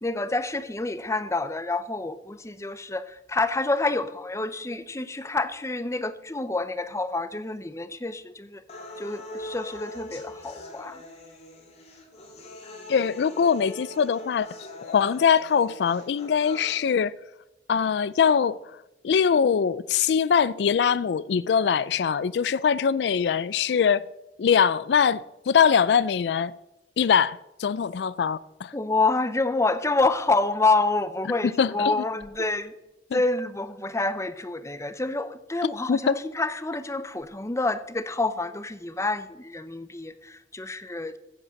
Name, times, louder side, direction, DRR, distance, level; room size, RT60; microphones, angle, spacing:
voice 1, 0.0-8.6 9.0-11.0 28.7-32.7 33.1-41.2, left 3 dB, 15° left, 0.7 m, -27 dB
sound 1, 8.7-16.7, left 1 dB, 35° left, 2.4 m, -42 dB
voice 2, 12.9-14.5 14.8-17.1 17.7-18.6 19.0-24.1 24.4-26.5 27.0-28.7 31.6-31.9 33.1-33.2 35.6-36.2, left 7 dB, 65° left, 0.3 m, -22 dB
15.0 x 8.0 x 6.3 m
head